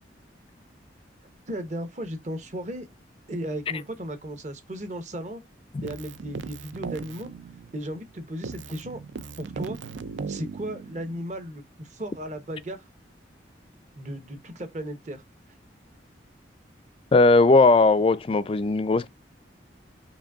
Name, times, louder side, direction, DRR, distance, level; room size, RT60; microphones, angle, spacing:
voice 1, 1.5-2.9 3.3-5.4 5.8-7.3 7.7-9.0 9.4-9.8 10.3-12.8 14.0-15.2, right 1 dB, 40° right, 0.9 m, -35 dB
Keyboard (musical), 5.8-8.1 8.4-11.2, right 5 dB, 80° right, 0.4 m, -38 dB
voice 2, 17.1-19.1, left 3 dB, 30° left, 0.3 m, -18 dB
5.2 x 2.6 x 2.4 m
head